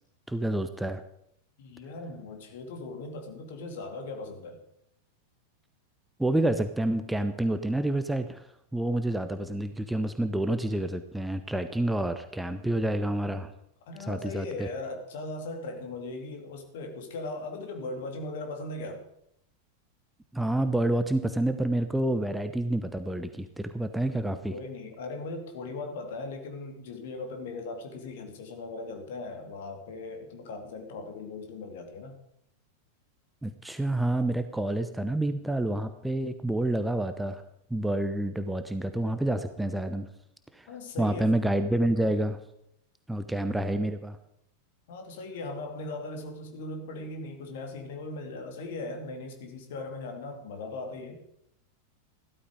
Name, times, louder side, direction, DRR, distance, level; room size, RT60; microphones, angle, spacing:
voice 1, 0.3-1.0 6.2-8.5 8.7-13.5 14.0-14.7 20.3-24.6 33.4-37.4 37.7-40.1 40.5-40.7 41.0-42.4 43.1-44.2, right 1 dB, 5° right, 9 dB, 0.9 m, -28 dB
voice 2, 1.6-4.6 13.9-19.0 24.4-32.2 40.7-41.3 44.9-51.2, left 2 dB, 55° left, 4 dB, 2.8 m, -38 dB
15.0 x 13.0 x 5.0 m, 0.74 s
figure-of-eight pair, 90°, 0 cm